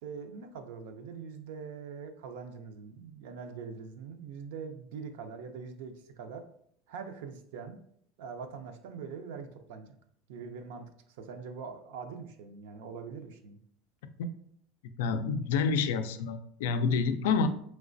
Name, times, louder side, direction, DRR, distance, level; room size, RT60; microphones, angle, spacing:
voice 1, 0.0-6.4 6.9-7.8 8.2-9.9 10.3-13.6, right 5 dB, 75° right, 7 dB, 0.4 m, -43 dB
voice 2, 15.0-17.5, left 5 dB, 90° left, 9 dB, 0.3 m, -28 dB
3.2 x 3.0 x 2.5 m, 0.66 s
cardioid pair, 170°, 0 cm